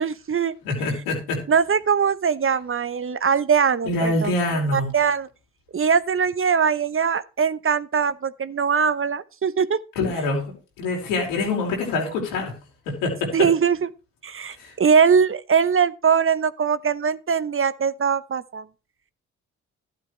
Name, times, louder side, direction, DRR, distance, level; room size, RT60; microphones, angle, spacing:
voice 1, 0.0-0.5 1.5-4.3 4.7-5.3 5.7-9.8 12.1-12.2 13.3-13.9 14.2-18.6, right 6 dB, 40° right, 0.9 m, -21 dB
voice 2, 0.6-1.4 3.8-4.9 10.0-12.5 12.9-13.5 14.6-14.7, left 2 dB, 90° left, 4.5 m, -25 dB
12.5 x 11.5 x 3.2 m
hypercardioid pair, 45°, 33 cm